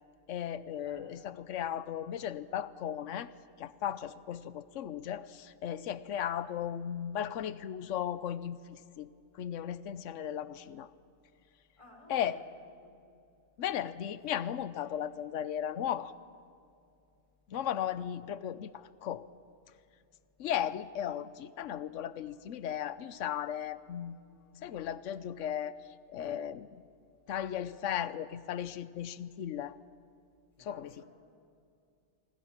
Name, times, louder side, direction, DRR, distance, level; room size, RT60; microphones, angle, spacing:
voice 1, 0.3-3.3 3.6-9.1 9.3-10.9 12.1-12.4 13.6-16.1 17.5-19.3 20.4-24.2 24.5-25.8 26.1-26.8 27.3-29.8 30.6-31.0, left 10 dB, 75° left, 15 dB, 1.1 m, -36 dB
voice 2, 0.8-1.1 11.8-12.9 17.5-17.7 30.6-31.1, left 1 dB, 25° left, 0 dB, 5.3 m, -57 dB
26.0 x 26.0 x 6.0 m, 2.5 s
omnidirectional pair, 1.3 m